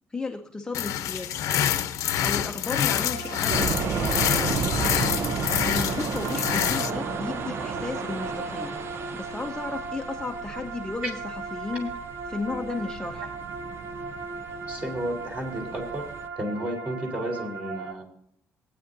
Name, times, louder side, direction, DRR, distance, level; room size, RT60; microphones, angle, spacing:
voice 1, 0.1-1.5 2.2-4.4 5.6-8.8 9.1-11.9 12.3-13.3, left 3 dB, 15° left, 3 dB, 0.7 m, -34 dB
sound 1, 0.7-6.9, left 10 dB, 80° left, 0.8 m, -26 dB
sound 2, 2.9-17.9, right 4 dB, 65° right, 1.3 m, -37 dB
sound 3, 3.5-16.3, right 5 dB, 50° right, 0.7 m, -33 dB
voice 2, 14.7-16.0 16.4-18.1, right 1 dB, 25° right, 2 dB, 3.5 m, -32 dB
18.5 x 9.3 x 2.7 m, 0.66 s
cardioid pair, 135°, 5 cm